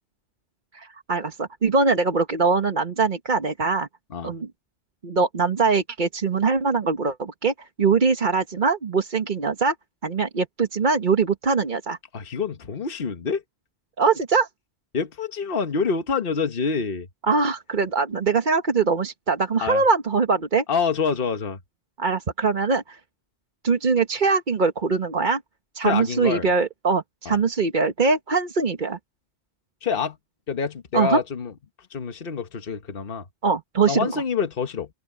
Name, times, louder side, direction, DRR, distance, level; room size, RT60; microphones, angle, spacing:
voice 1, 0.7-3.9 4.2-4.5 5.0-9.7 10.0-12.0 14.0-14.5 17.3-20.6 22.0-23.0 23.6-25.4 25.7-29.0 30.9-31.2 33.4-34.2, right 4 dB, 45° right, 1.4 m, -22 dB
voice 2, 12.1-13.4 14.9-17.1 19.6-19.8 20.7-21.6 25.8-26.5 27.2-27.4 29.8-30.2 30.5-31.5 31.9-33.2 33.9-34.9, left 5 dB, 55° left, 1.4 m, -26 dB
omnidirectional pair, 1.1 m